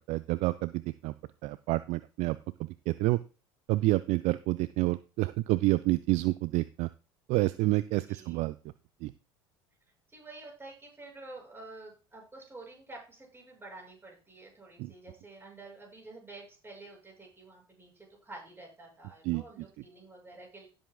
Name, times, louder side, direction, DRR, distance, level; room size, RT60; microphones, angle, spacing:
voice 1, 0.1-1.1 1.4-3.2 3.7-6.9 7.3-8.6 9.0-9.1 14.8-14.9 19.2-19.7, right 19 dB, 50° right, 17 dB, 0.4 m, -29 dB
voice 2, 8.1-8.4 10.1-20.7, right 2 dB, 15° right, -1 dB, 6.3 m, -49 dB
17.0 x 7.7 x 2.3 m, 0.34 s
figure-of-eight pair, 65°, 14 cm